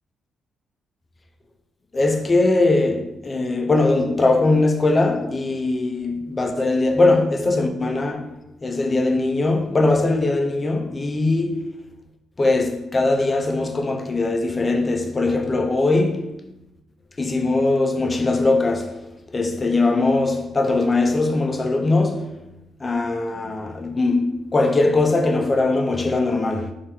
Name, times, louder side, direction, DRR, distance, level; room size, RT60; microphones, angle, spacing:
voice 1, 1.9-11.8 12.4-16.3 17.2-22.4 22.8-26.7, left 2 dB, 25° left, 0.4 m, -21 dB
2.9 x 2.7 x 3.4 m
cardioid pair, 90°, 0 cm